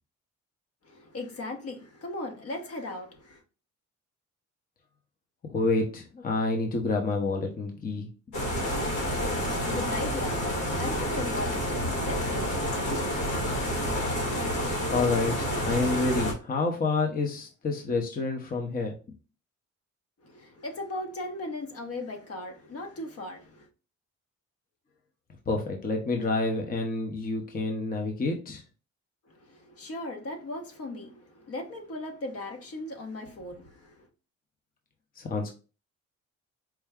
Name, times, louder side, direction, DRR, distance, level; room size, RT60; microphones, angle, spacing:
voice 1, 0.8-3.4 9.3-12.9 20.2-23.7 29.3-34.1, left 2 dB, 50° left, 1.0 m, -38 dB
voice 2, 5.4-8.1 14.9-18.9 25.5-28.6 35.2-35.5, left 3 dB, 30° left, 0.8 m, -28 dB
sound 1, 8.3-16.3, equal, 85° left, 1.7 m, -29 dB
4.6 x 2.1 x 3.5 m
cardioid pair, 90°, 30 cm